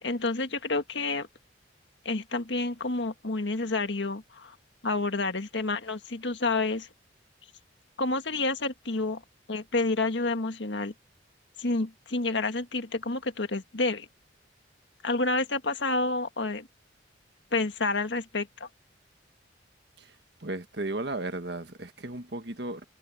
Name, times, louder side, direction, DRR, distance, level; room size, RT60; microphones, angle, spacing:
voice 1, 0.0-1.3 2.0-4.5 4.8-6.9 8.0-9.2 9.5-10.9 11.6-14.1 15.0-16.7 17.5-18.7, left 3 dB, 75° left, 1.7 m, -29 dB
voice 2, 20.4-22.8, right 2 dB, 65° right, 1.7 m, -35 dB
head